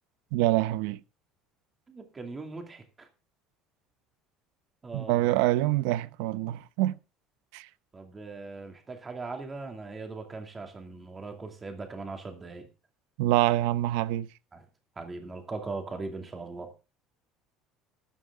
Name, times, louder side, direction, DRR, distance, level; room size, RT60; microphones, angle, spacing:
voice 1, 0.3-1.0 4.9-6.9 7.5-7.7 13.2-14.3, right 16 dB, 85° right, 0.7 m, -25 dB
voice 2, 1.9-3.1 4.8-5.3 7.9-12.7 14.5-14.6 15.0-16.7, right 3 dB, 20° right, 2.5 m, -39 dB
13.0 x 11.0 x 3.6 m
cardioid pair, 160°, 0 cm